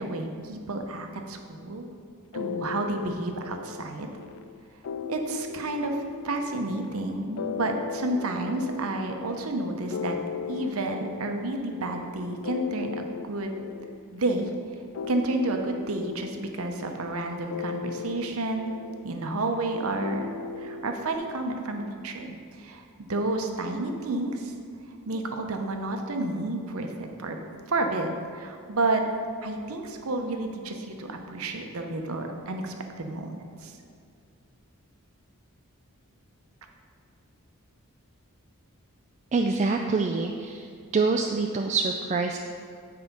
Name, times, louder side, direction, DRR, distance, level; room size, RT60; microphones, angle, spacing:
voice 1, 0.0-1.9 2.3-4.1 5.1-10.2 10.5-13.5 14.1-14.5 15.1-18.7 19.0-20.3 20.6-24.5 25.1-27.4 27.7-29.0 29.4-33.4 33.6-33.8, right 2 dB, 70° right, 4 dB, 0.8 m, -30 dB
sound 1, 2.3-21.2, left 6 dB, 65° left, 0.3 m, -38 dB
voice 2, 39.3-40.7 40.9-42.4, right 4 dB, 30° right, 3 dB, 0.3 m, -25 dB
8.1 x 4.8 x 5.3 m, 2.3 s
head